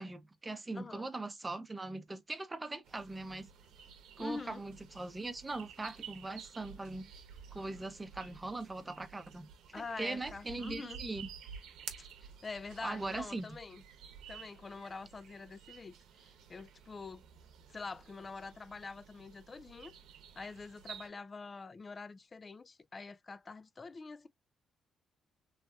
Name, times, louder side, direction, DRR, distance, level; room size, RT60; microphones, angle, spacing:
voice 1, 0.0-3.5 4.2-7.1 7.5-9.5 9.7-11.3 12.8-13.5, right 2 dB, 20° right, 0.6 m, -40 dB
voice 2, 0.7-1.1 4.2-4.6 9.7-11.0 12.0-12.1 12.4-13.8 14.3-16.0 16.5-17.3 17.7-19.9 20.4-24.3, left 4 dB, 30° left, 0.3 m, -45 dB
sound 1, 2.8-21.1, right 7 dB, 85° right, 0.9 m, -52 dB
3.2 x 2.6 x 2.3 m
cardioid pair, 90°, 0 cm